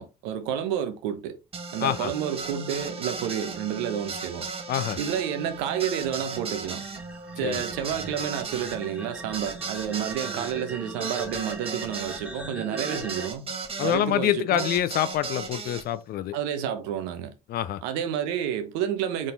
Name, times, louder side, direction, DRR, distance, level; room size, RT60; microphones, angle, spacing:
voice 1, 0.0-1.4 1.7-4.5 5.0-6.8 7.3-13.5 13.8-14.7 16.3-17.3 17.8-19.3, right 9 dB, 75° right, 0.7 m, -30 dB
sound 1, 1.5-14.0 14.6-15.8, right 4 dB, 30° right, 1.0 m, -36 dB
voice 2, 4.7-5.0 7.4-7.6 13.8-16.4 17.5-17.8, left 11 dB, 55° left, 0.5 m, -26 dB
sound 2, 5.2-13.3, right 1 dB, 5° right, 1.0 m, -41 dB
4.1 x 3.7 x 2.5 m
hypercardioid pair, 55°, 19 cm